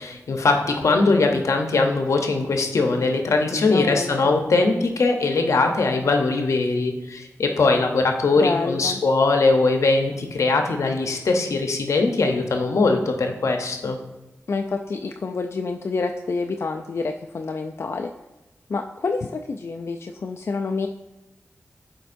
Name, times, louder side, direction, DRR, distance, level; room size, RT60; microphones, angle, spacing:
voice 1, 0.0-14.0, left 3 dB, 85° left, 4 dB, 0.7 m, -21 dB
voice 2, 3.7-4.3 8.4-9.0 14.5-18.1 18.7-20.9, left 4 dB, 60° left, 4 dB, 0.3 m, -28 dB
11.0 x 4.5 x 2.6 m, 1.0 s
cardioid pair, 50°, 5 cm